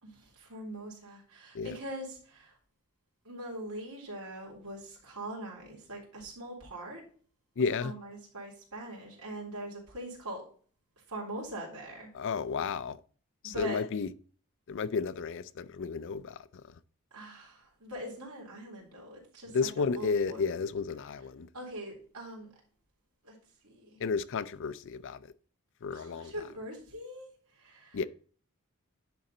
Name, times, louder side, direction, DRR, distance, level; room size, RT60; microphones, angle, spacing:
voice 1, 0.0-2.6 3.2-7.0 7.8-10.4 11.1-12.1 13.4-13.8 17.1-20.4 21.5-22.5 23.2-23.4 23.6-24.0 25.9-28.1, right 1 dB, 85° right, 3.6 m, -42 dB
voice 2, 7.6-7.9 12.1-13.0 13.4-14.1 14.7-16.4 19.5-21.5 24.0-25.2 25.8-26.3 27.9-28.0, left 5 dB, 60° left, 0.4 m, -32 dB
10.5 x 3.8 x 4.1 m
head